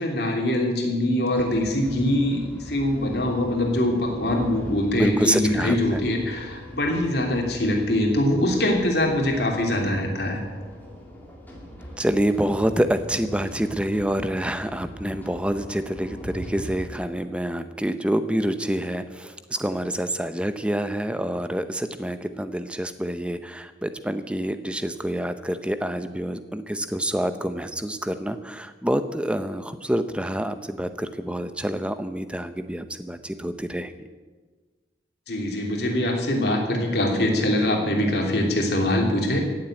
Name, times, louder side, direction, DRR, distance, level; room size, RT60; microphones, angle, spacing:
voice 1, 0.0-10.4 35.3-39.5, left 1 dB, 60° left, 1 dB, 3.1 m, -23 dB
sound 1, 1.3-16.9, equal, 10° left, 2.4 m, -41 dB
voice 2, 5.0-6.0 12.0-34.1, right 1 dB, 5° right, 10 dB, 0.7 m, -27 dB
16.0 x 7.6 x 8.9 m, 1.4 s
head